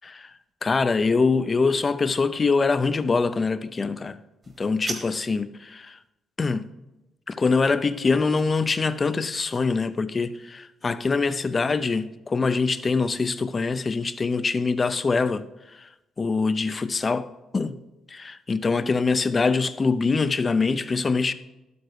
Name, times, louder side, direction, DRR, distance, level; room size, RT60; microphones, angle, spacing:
voice 1, 0.6-4.2 4.6-6.0 6.4-6.7 7.3-15.5 15.8-15.9 16.2-17.3 17.5-17.8 18.1-21.3, left 4 dB, 30° left, 0.5 m, -24 dB
sound 1, 4.4-5.4, right 3 dB, 35° right, 1.6 m, -36 dB
11.5 x 8.0 x 4.7 m
cardioid pair, 105°, 0 cm